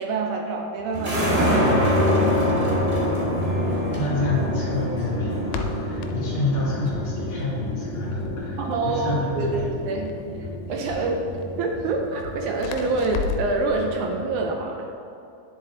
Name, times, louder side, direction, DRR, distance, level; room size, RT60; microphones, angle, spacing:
voice 1, 0.0-2.1 8.6-10.1 10.7-11.3 11.6-14.9, right 3 dB, 80° right, 2 dB, 2.1 m, -26 dB
sound 1, 0.9-14.5, equal, 25° right, 1.2 m, -26 dB
Crackle, 2.1-13.6, left 6 dB, 80° left, 2.0 m, -38 dB
voice 2, 3.6-9.7 10.7-11.0, left 2 dB, 40° left, -7 dB, 2.9 m, -29 dB
10.0 x 7.4 x 3.7 m, 2.7 s
omnidirectional pair, 3.6 m